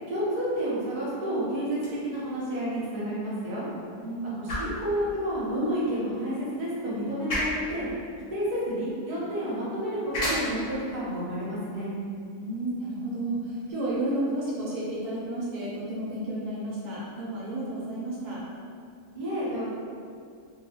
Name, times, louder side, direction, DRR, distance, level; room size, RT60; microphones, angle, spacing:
voice 1, 0.1-3.7 4.4-7.9 8.3-11.9 19.1-19.6, equal, 45° right, -9 dB, 0.5 m, -30 dB
sound 1, 1.7-13.7, equal, 45° left, 0.8 m, -38 dB
voice 2, 4.0-4.4 12.3-18.4, right 1 dB, 80° right, -6 dB, 1.1 m, -32 dB
2.7 x 2.2 x 2.7 m, 2.3 s
omnidirectional pair, 1.6 m